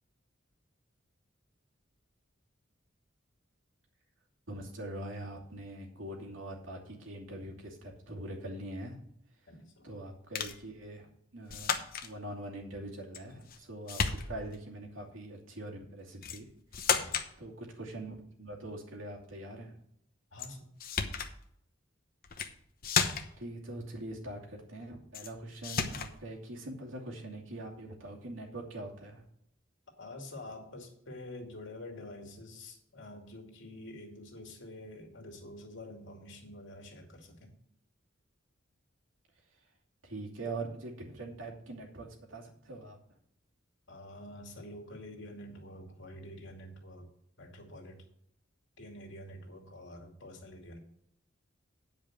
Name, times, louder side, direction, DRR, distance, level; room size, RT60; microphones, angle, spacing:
voice 1, 4.5-9.1 9.8-11.8 12.0-16.5 17.4-19.8 23.4-29.2 40.0-43.0, right 1 dB, 75° right, -1 dB, 2.6 m, -43 dB
voice 2, 9.5-9.9 16.9-17.3 20.3-20.7 30.0-37.5 43.9-47.1 47.4-48.0 48.8-50.8, left 1 dB, 65° left, 2 dB, 2.5 m, -47 dB
sound 1, 10.3-10.6 11.5-12.1 13.1-13.6 13.9-14.6 16.2-16.4 16.7-17.3 20.4-20.5 20.8-21.3 22.2-22.5 22.8-23.4 25.1-25.3 25.6-26.1, left 6 dB, 50° left, 0.9 m, -32 dB
9.3 x 5.2 x 7.9 m, 0.73 s
head